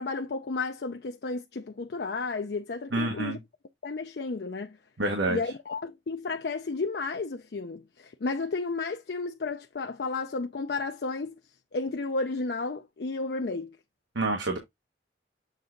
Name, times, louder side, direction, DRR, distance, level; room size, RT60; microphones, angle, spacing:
voice 1, 0.0-3.4 3.8-4.8 5.3-11.4 11.7-13.8, left 3 dB, 60° left, 0.5 m, -32 dB
voice 2, 2.9-3.4 5.0-5.4 14.1-14.6, right 2 dB, 85° right, 1.4 m, -27 dB
7.3 x 3.4 x 3.8 m
head